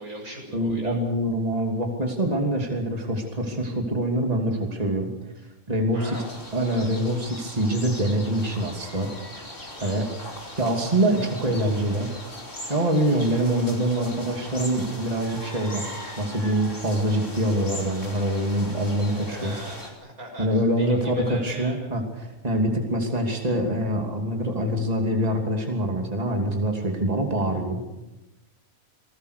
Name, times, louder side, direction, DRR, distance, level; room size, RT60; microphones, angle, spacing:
voice 1, 0.0-1.0 5.4-5.5 5.9-6.3 9.8-10.1 19.3-21.9, right 1 dB, 85° right, 1 dB, 7.4 m, -40 dB
voice 2, 0.5-5.1 5.7-6.2 6.5-9.1 9.8-10.1 10.6-12.1 12.7-19.5 20.4-27.8, right 1 dB, 25° right, 2 dB, 2.9 m, -25 dB
sound 1, 6.1-19.9, left 1 dB, 55° left, 5.0 m, -39 dB
27.5 x 19.5 x 6.7 m, 1.0 s
omnidirectional pair, 1.5 m